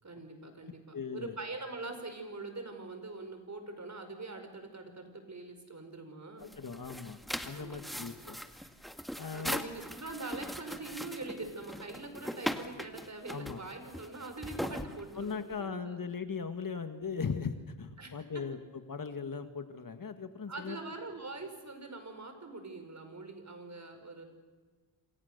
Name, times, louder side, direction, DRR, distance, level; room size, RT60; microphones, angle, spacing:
voice 1, 0.0-6.5 7.5-7.9 9.3-16.0 18.0-18.4 20.5-24.2, right 3 dB, 35° right, 7 dB, 5.3 m, -43 dB
voice 2, 0.6-1.4 6.4-7.2 7.4-8.4 9.2-9.6 13.3-13.6 15.2-18.6 18.9-20.8, left 5 dB, 45° left, 8 dB, 1.9 m, -38 dB
sound 1, 6.4-15.5, equal, ahead, 1.8 m, -40 dB
28.0 x 27.0 x 6.8 m, 1.4 s
cardioid pair, 85°, 47 cm